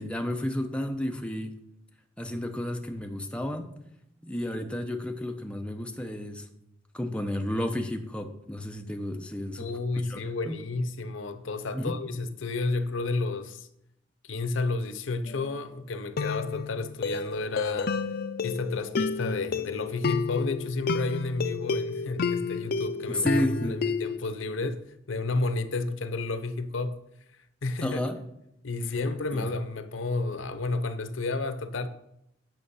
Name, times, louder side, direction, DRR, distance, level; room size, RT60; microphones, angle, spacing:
voice 1, 0.0-1.6 2.2-3.7 4.2-6.4 6.9-9.7 10.0-10.6 11.7-11.9 23.1-23.8 27.8-28.2 29.3-29.5, left 1 dB, 5° left, 0.8 m, -31 dB
voice 2, 9.6-13.7 14.2-18.0 18.4-23.3 23.6-27.0 27.6-28.0 28.6-31.9, left 3 dB, 90° left, 0.7 m, -31 dB
sound 1, 15.3-15.5 16.2-24.2, left 4 dB, 55° left, 0.4 m, -30 dB
9.1 x 6.0 x 5.5 m
head